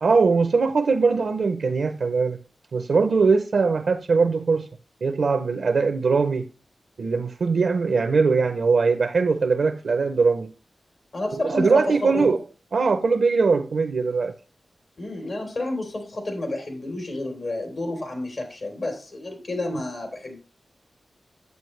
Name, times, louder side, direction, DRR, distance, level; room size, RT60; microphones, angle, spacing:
voice 1, 0.0-2.4 2.7-4.7 5.0-6.5 7.0-10.5 11.3-12.4 12.7-14.3, right 4 dB, 80° right, 0.6 m, -21 dB
voice 2, 11.1-12.4 15.0-20.4, left 2 dB, 70° left, 3.5 m, -30 dB
9.5 x 7.7 x 3.2 m
cardioid pair, 45°, 0 cm